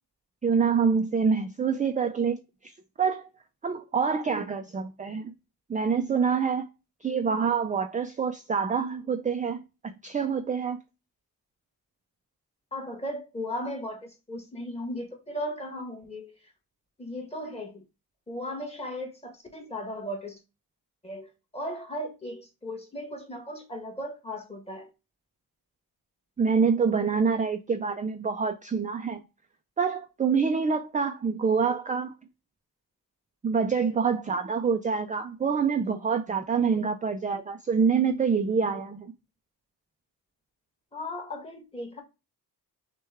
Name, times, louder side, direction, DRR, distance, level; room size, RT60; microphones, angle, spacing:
voice 1, 0.4-2.4 2.6-2.7 3.0-3.3 3.6-5.3 5.7-6.6 7.0-9.6 10.0-10.8 26.4-29.2 29.8-32.1 33.4-39.1, right 5 dB, 20° right, 0.3 m, -26 dB
voice 2, 12.7-16.3 17.0-17.8 18.3-20.4 21.0-21.3 21.5-24.9 40.9-42.0, left 1 dB, 15° left, 1.4 m, -36 dB
6.1 x 2.3 x 3.4 m
wide cardioid pair, 160°, 39 cm